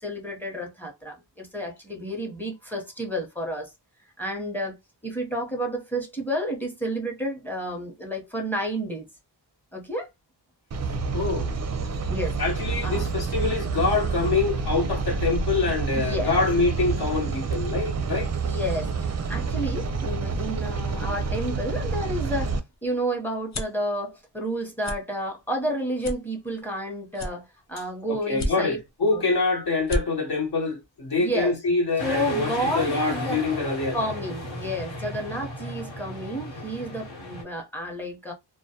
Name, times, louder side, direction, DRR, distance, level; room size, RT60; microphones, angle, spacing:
voice 1, 0.0-3.7 4.2-4.8 5.0-9.1 9.7-10.1 12.1-12.4 12.8-13.1 15.9-16.4 18.4-22.5 22.8-28.8 29.1-29.2 31.2-31.5 32.0-33.4 33.9-38.3, equal, 5° left, 0.8 m, -31 dB
sound 1, 10.7-22.6, right 4 dB, 40° right, 0.5 m, -28 dB
voice 2, 11.1-11.5 12.4-18.3 28.1-34.0, left 3 dB, 60° left, 1.0 m, -25 dB
sound 2, 22.5-23.8 24.3-24.5 24.8-25.0 25.5-25.6 26.0-26.8 27.1-27.8 28.3-28.9 29.4-29.5 29.7-30.0, left 1 dB, 40° left, 0.5 m, -31 dB
sound 3, 32.0-37.4, left 1 dB, 85° left, 1.2 m, -35 dB
2.2 x 2.1 x 2.7 m
wide cardioid pair, 95°, 44 cm